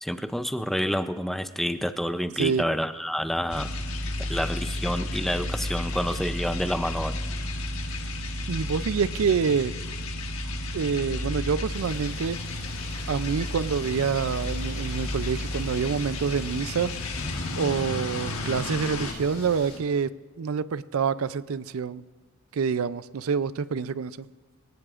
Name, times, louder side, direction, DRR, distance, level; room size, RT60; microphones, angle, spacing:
voice 1, 0.0-3.7 4.3-7.2, equal, ahead, 10 dB, 0.4 m, -28 dB
sound 1, 3.5-19.1, left 1 dB, 70° left, 1.4 m, -32 dB
voice 2, 8.5-9.7 10.7-12.4 13.1-16.9 17.6-20.1 20.4-22.0 22.5-24.3, right 6 dB, 70° right, 16 dB, 0.4 m, -27 dB
sound 2, 11.7-19.8, left 2 dB, 50° left, 3.7 m, -44 dB
23.5 x 17.5 x 2.5 m, 1.5 s
head